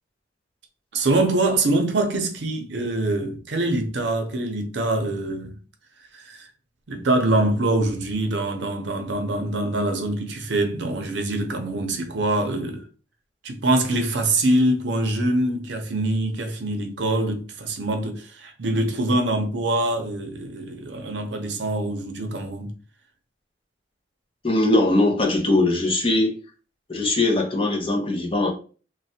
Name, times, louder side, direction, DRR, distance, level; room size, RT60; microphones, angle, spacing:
voice 1, 0.9-5.6 6.1-6.5 6.9-12.8 13.4-22.7, right 2 dB, 75° right, 0.6 m, -24 dB
voice 2, 24.4-26.3 26.9-28.5, left 2 dB, 30° left, 0.7 m, -21 dB
3.2 x 2.2 x 2.7 m
head